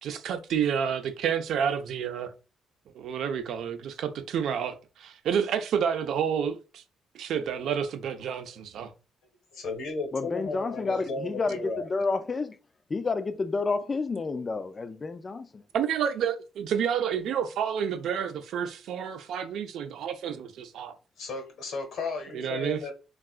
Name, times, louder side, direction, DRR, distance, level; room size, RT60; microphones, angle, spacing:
voice 1, 0.0-2.3 2.9-6.8 7.1-8.9 15.7-20.9 22.3-22.9, right 8 dB, 75° right, 0.4 m, -29 dB
voice 2, 9.5-11.9 21.2-22.9, left 3 dB, 75° left, 1.0 m, -34 dB
voice 3, 10.1-12.6 12.9-15.6, left 3 dB, 30° left, 0.3 m, -30 dB
3.6 x 2.3 x 2.4 m
cardioid pair, 90°, 0 cm